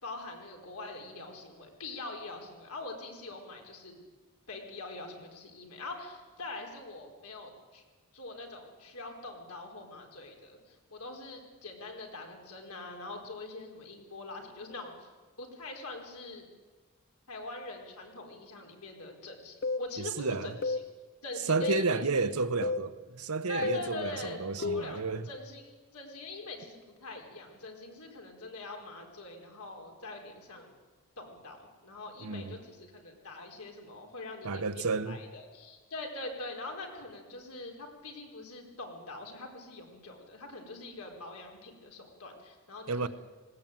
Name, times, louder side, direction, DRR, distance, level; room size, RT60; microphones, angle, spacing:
voice 1, 0.0-4.0 4.5-7.8 8.1-15.1 15.4-16.4 17.3-20.8 21.2-22.3 23.5-30.8 31.2-43.1, left 2 dB, 80° left, 4.5 m, -43 dB
sound 1, 19.6-19.9 20.6-20.9 21.6-21.9 22.6-22.9 23.6-23.9 24.6-24.9, left 3 dB, 50° left, 0.7 m, -31 dB
voice 2, 20.2-20.5 21.5-25.3 32.2-32.6 34.4-35.2 42.9-43.1, right 3 dB, 75° right, 1.1 m, -31 dB
19.5 x 17.5 x 9.1 m
head